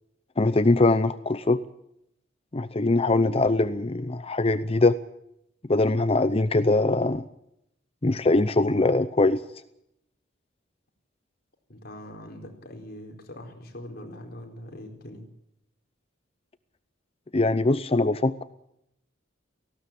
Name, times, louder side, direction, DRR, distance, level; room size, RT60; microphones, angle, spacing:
voice 1, 0.4-1.6 2.5-5.0 5.7-7.2 8.0-9.4 17.3-18.4, left 2 dB, 30° left, 13 dB, 0.7 m, -22 dB
voice 2, 11.7-15.2, left 1 dB, 50° left, 3 dB, 4.4 m, -42 dB
18.5 x 16.0 x 8.8 m, 0.78 s
head